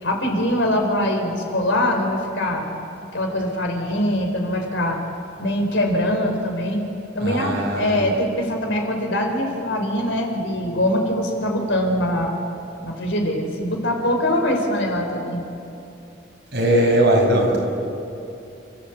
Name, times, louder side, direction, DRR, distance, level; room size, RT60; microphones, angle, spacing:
voice 1, 0.0-2.6 3.1-5.0 5.4-6.8 7.1-12.3 12.8-15.4, left 1 dB, 80° left, 2 dB, 3.9 m, -23 dB
voice 2, 7.2-8.0 16.5-17.6, right 1 dB, 60° right, -1 dB, 5.7 m, -19 dB
29.5 x 14.0 x 7.9 m, 2.8 s
head